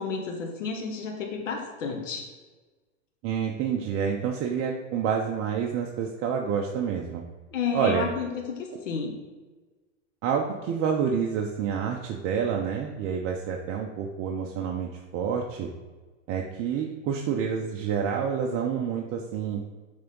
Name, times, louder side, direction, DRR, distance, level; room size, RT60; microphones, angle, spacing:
voice 1, 0.0-2.2 7.5-9.2, left 5 dB, 85° left, 2 dB, 1.2 m, -31 dB
voice 2, 3.2-7.2 7.7-8.1 10.2-15.7 16.3-19.6, right 7 dB, 35° right, 1 dB, 0.7 m, -28 dB
6.6 x 3.5 x 5.3 m, 1.3 s
hypercardioid pair, 120°, 37 cm